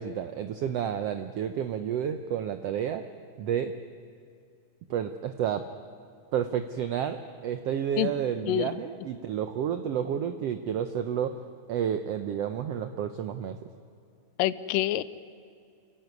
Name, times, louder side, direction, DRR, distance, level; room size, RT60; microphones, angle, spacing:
voice 1, 0.0-3.0 3.4-3.7 4.9-5.7 6.3-11.4 11.7-13.6, right 9 dB, 90° right, 9 dB, 1.4 m, -30 dB
voice 2, 14.4-15.0, left 14 dB, 90° left, 16 dB, 2.4 m, -26 dB
29.0 x 14.0 x 9.6 m, 2.5 s
omnidirectional pair, 3.8 m